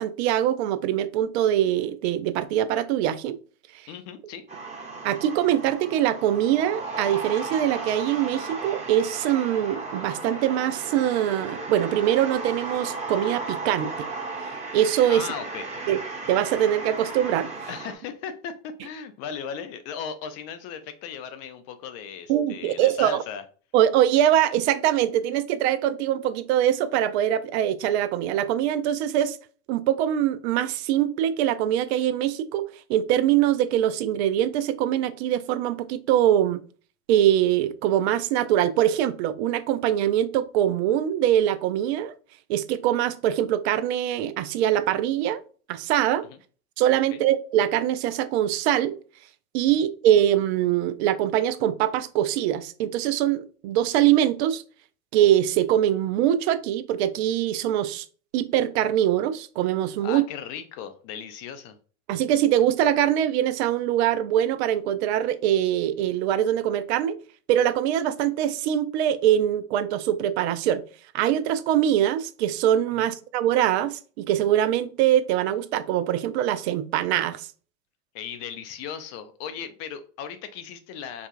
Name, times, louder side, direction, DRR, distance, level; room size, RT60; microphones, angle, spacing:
voice 1, 0.0-3.4 5.0-14.1 14.7-15.3 15.9-16.0 16.3-17.5 22.3-23.2 23.7-29.4 29.7-32.6 32.9-36.6 37.1-42.1 42.5-45.4 45.7-46.3 46.8-48.9 49.5-54.6 55.1-58.0 58.3-60.2 62.1-67.2 67.5-70.8 71.1-77.5, right 11 dB, 50° right, 0.4 m, -23 dB
voice 2, 3.9-4.4 15.1-15.6 17.7-23.4 47.1-47.2 60.0-61.8 72.9-73.1 78.1-81.3, left 7 dB, 35° left, 0.4 m, -37 dB
sound 1, 4.5-17.9, right 3 dB, 15° right, 1.0 m, -35 dB
4.7 x 2.3 x 2.5 m
hypercardioid pair, 90°, 44 cm